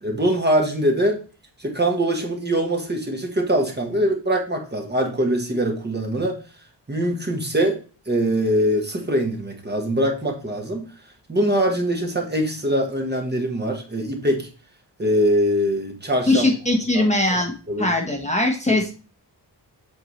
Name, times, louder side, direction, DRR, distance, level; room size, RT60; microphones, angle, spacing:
voice 1, 0.0-1.2 1.6-6.4 6.9-7.8 8.1-10.8 11.3-14.5 15.0-16.4 16.9-17.4 17.7-17.9, right 1 dB, 25° right, 2 dB, 1.3 m, -22 dB
voice 2, 16.3-17.5 17.8-18.9, left 2 dB, 15° left, 1 dB, 1.1 m, -20 dB
7.9 x 4.5 x 3.2 m, 0.36 s
wide cardioid pair, 110°, 43 cm